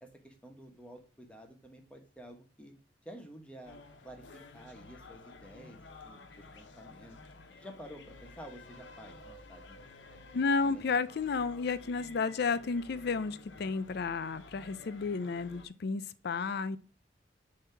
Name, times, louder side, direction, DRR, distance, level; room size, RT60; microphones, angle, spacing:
voice 1, 0.0-2.7 3.0-3.8 4.0-4.2 4.5-7.2 7.6-9.8 10.0-10.2 10.6-10.8, equal, 5° left, 1.0 m, -51 dB
sound 1, 3.6-15.7, left 3 dB, 90° left, 0.8 m, -52 dB
voice 2, 10.3-16.8, left 4 dB, 60° left, 0.5 m, -32 dB
7.0 x 2.8 x 5.7 m
head